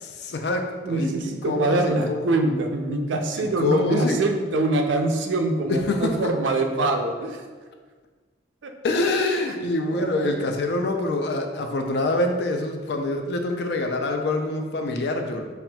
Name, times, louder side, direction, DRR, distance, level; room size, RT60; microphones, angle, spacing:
voice 1, 0.0-2.3 3.4-4.2 5.7-6.3 8.8-15.5, left 2 dB, 60° left, 4 dB, 0.4 m, -25 dB
voice 2, 0.8-7.4 8.6-8.7 9.5-9.6 9.9-10.5, right 2 dB, 80° right, 4 dB, 0.4 m, -24 dB
5.5 x 2.4 x 2.2 m, 1.4 s
head